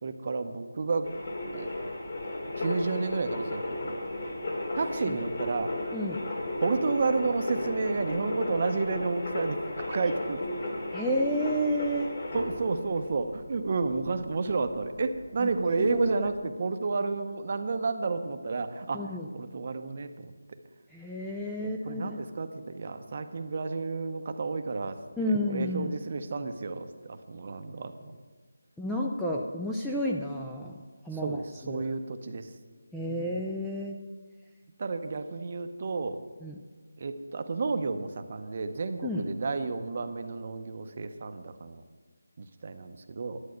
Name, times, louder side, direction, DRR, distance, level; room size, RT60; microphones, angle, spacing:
voice 1, 0.0-1.1 1.5-1.7 2.6-4.0 4.7-5.7 6.6-10.4 12.3-19.0 19.3-20.3 21.6-28.1 31.2-32.5 33.0-33.3 34.8-36.2 37.0-41.8 42.4-43.4, right 4 dB, 35° right, 8 dB, 0.7 m, -31 dB
sound 1, 1.0-16.4, left 1 dB, 40° left, 2.1 m, -35 dB
voice 2, 10.9-12.1 15.4-15.5 15.8-16.3 18.9-19.3 20.9-22.2 25.2-25.9 28.8-30.8 31.0-31.8 32.9-34.0 36.4-36.6 39.0-39.3, equal, ahead, -3 dB, 0.3 m, -31 dB
11.5 x 8.2 x 6.4 m, 1.4 s
figure-of-eight pair, 175°, 0 cm